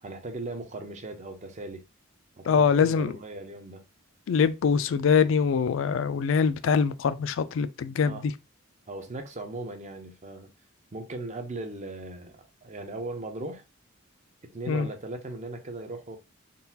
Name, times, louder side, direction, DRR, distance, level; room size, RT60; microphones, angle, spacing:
voice 1, 0.0-1.8 2.4-3.8 7.5-7.6 8.0-8.3 8.9-10.5 10.9-13.6 14.5-16.2, right 2 dB, 35° right, 0.6 m, -38 dB
voice 2, 2.5-3.1 4.3-8.3 14.7-14.9, left 6 dB, 70° left, 0.3 m, -23 dB
3.8 x 2.3 x 2.7 m
head